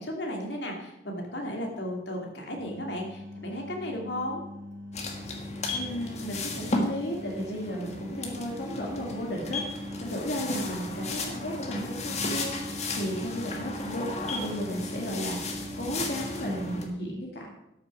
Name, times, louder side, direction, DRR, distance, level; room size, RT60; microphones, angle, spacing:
voice 1, 0.0-4.4, equal, 80° left, 1 dB, 2.6 m, -34 dB
sound 1, 2.6-16.7, left 1 dB, 80° right, 3.4 m, -43 dB
sound 2, 4.9-16.9, left 2 dB, 40° left, 1.6 m, -34 dB
voice 2, 5.7-17.5, equal, 65° left, -2 dB, 2.1 m, -34 dB
12.5 x 6.8 x 6.2 m, 0.88 s
head